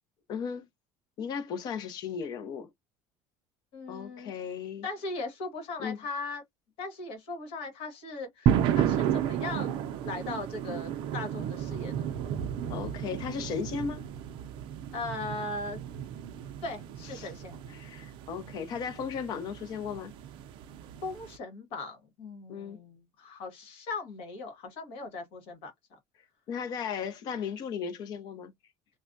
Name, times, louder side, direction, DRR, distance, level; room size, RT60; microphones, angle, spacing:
voice 1, 0.3-0.7 1.2-2.7 3.9-4.9 5.8-6.0 12.7-14.0 17.2-17.3 17.7-20.1 22.5-22.8 26.5-28.5, left 6 dB, 40° left, 0.6 m, -36 dB
voice 2, 3.7-4.3 4.8-6.4 6.8-12.2 14.9-15.8 16.6-17.6 21.0-26.0, left 3 dB, 55° left, 1.5 m, -39 dB
sound 1, 8.5-21.4, right 9 dB, 45° right, 0.5 m, -33 dB
3.3 x 2.2 x 2.6 m
cardioid pair, 170°, 11 cm